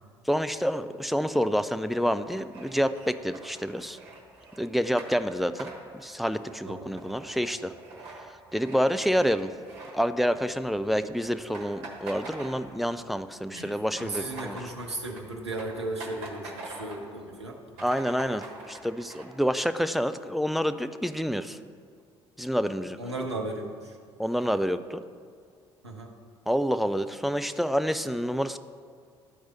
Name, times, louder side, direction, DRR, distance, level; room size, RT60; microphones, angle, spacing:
voice 1, 0.3-4.0 4.6-5.7 6.0-7.7 8.5-9.5 9.9-14.6 17.8-21.6 22.4-23.0 24.2-25.0 26.5-28.6, equal, ahead, 11 dB, 0.3 m, -28 dB
sound 1, 2.2-10.6 10.8-11.0 11.3-13.1 13.4-17.1 17.5-17.6 17.7-19.2, right 3 dB, 60° right, 1.3 m, -45 dB
voice 2, 6.6-7.0 13.5-17.8 23.0-24.0 25.8-26.1, right 2 dB, 85° right, 1 dB, 0.7 m, -36 dB
12.0 x 4.7 x 4.1 m, 2.1 s
figure-of-eight pair, 50°, 14 cm